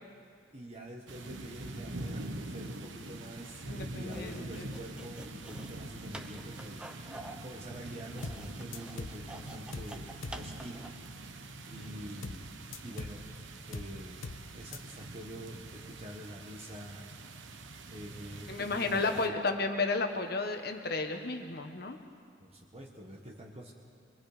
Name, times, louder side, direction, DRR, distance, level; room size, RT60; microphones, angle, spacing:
voice 1, 0.5-6.8 7.4-10.9 11.7-12.5 12.8-14.3 14.5-17.0 17.5-19.4 22.4-23.7, equal, 30° right, -1 dB, 1.6 m, -46 dB
sound 1, 1.1-19.3, right 2 dB, 65° right, 1.2 m, -44 dB
voice 2, 3.7-4.7 18.5-22.0, left 3 dB, 50° left, 5 dB, 1.5 m, -33 dB
sound 2, 4.1-11.1, right 1 dB, 5° right, 0.9 m, -48 dB
sound 3, 8.2-8.5 8.7-9.2 9.7-10.0 10.2-10.5 12.2-12.5 12.7-13.2 13.7-14.0 14.2-14.5 14.7-14.8, left 3 dB, 80° left, 1.0 m, -41 dB
23.5 x 23.0 x 5.2 m, 2.3 s
head